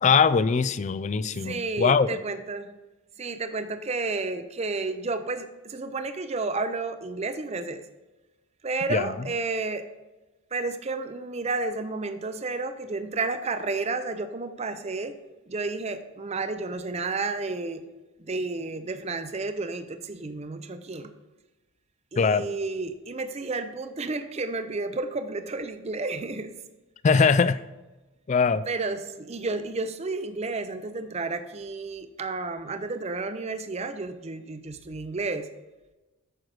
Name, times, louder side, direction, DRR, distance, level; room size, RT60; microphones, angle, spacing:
voice 1, 0.0-2.1 8.9-9.1 22.2-22.4 27.0-27.6 28.3-28.6, left 5 dB, 30° left, 15 dB, 0.3 m, -21 dB
voice 2, 1.3-2.7 3.2-7.8 8.6-9.9 10.5-15.1 15.5-17.8 18.2-21.1 22.1-26.6 27.1-27.4 28.7-35.5, right 3 dB, 30° right, 10 dB, 0.5 m, -31 dB
8.8 x 6.3 x 4.7 m, 1.1 s
head